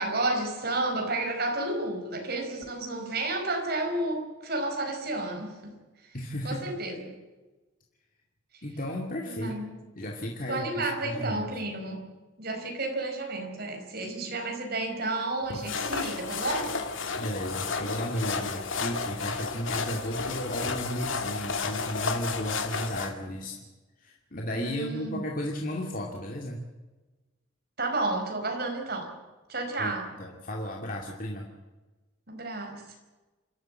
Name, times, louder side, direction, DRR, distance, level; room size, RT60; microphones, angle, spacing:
voice 1, 0.0-5.7 6.4-7.1 9.3-9.8 10.5-12.1 12.4-16.7 24.6-25.2 27.8-29.2 29.5-30.1 32.3-32.8, right 2 dB, 50° right, 4 dB, 4.8 m, -31 dB
voice 2, 6.1-6.7 8.6-9.5 10.0-11.6 17.1-23.6 24.0-26.7 29.8-31.5, equal, 45° left, 0 dB, 2.4 m, -34 dB
sound 1, 15.5-23.1, left 4 dB, 80° left, 2.2 m, -32 dB
28.0 x 13.0 x 7.8 m, 1.2 s
head